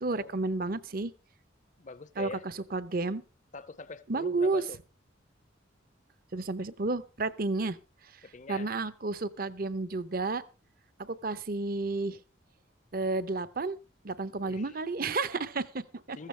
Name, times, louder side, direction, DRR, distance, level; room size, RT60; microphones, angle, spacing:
voice 1, 0.0-1.1 2.2-3.2 4.1-4.6 6.3-7.8 8.5-10.4 11.0-12.2 12.9-13.8 14.0-16.2, right 3 dB, 50° right, 0.8 m, -31 dB
voice 2, 1.8-2.4 3.5-4.8 8.3-8.7 14.4-14.7 16.2-16.3, left 3 dB, 40° left, 0.7 m, -44 dB
15.0 x 14.5 x 3.3 m
head